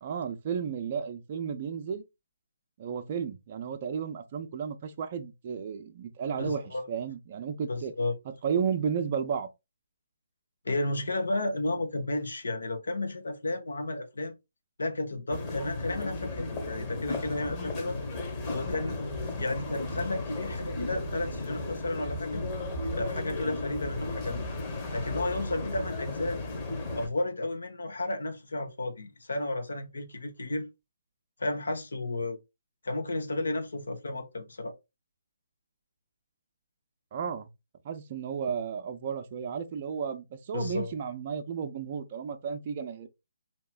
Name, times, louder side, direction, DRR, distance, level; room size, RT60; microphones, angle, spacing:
voice 1, 0.0-2.0 2.8-7.9 8.4-9.5 37.1-37.5 37.8-43.1, right 7 dB, 40° right, 0.5 m, -33 dB
voice 2, 6.4-6.9 7.7-8.1 10.6-14.3 14.8-18.0 18.5-22.4 22.9-24.5 24.9-26.4 26.9-30.7 31.4-32.4 32.8-34.7 40.5-40.9, left 2 dB, 75° left, 1.0 m, -33 dB
sound 1, 15.3-27.1, left 2 dB, 25° left, 1.1 m, -35 dB
4.5 x 2.9 x 2.3 m
figure-of-eight pair, 145°, 0 cm